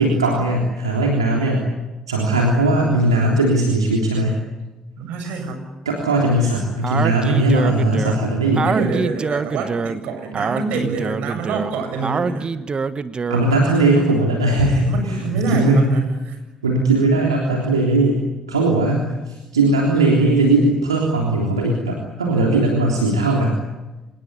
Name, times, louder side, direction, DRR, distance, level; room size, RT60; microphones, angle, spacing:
voice 1, 0.0-1.7 2.1-4.4 5.2-5.3 5.9-8.7 13.3-16.0 16.6-18.2 18.5-23.6, right 2 dB, 85° right, -1 dB, 3.4 m, -18 dB
voice 2, 5.0-5.6 8.6-12.5 14.8-16.4, right 4 dB, 65° right, 5 dB, 7.4 m, -26 dB
Speech, 6.8-13.6, right 5 dB, 35° right, 1.4 m, -25 dB
26.5 x 21.0 x 9.8 m, 1.1 s
figure-of-eight pair, 50°, 3 cm